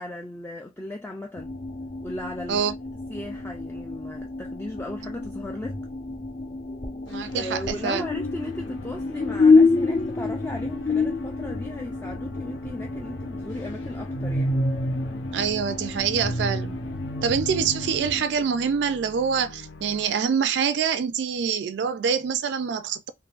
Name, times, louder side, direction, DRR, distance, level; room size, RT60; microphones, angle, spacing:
voice 1, 0.0-1.5 2.0-2.7 3.1-5.8 7.3-14.6, left 1 dB, 10° left, 0.3 m, -36 dB
sound 1, 1.4-18.2, left 3 dB, 45° left, 0.8 m, -27 dB
sound 2, 7.1-20.3, left 4 dB, 85° left, 0.6 m, -46 dB
voice 2, 7.1-8.0 15.3-16.8 17.2-23.1, right 6 dB, 70° right, 0.3 m, -25 dB
3.7 x 2.6 x 2.4 m
head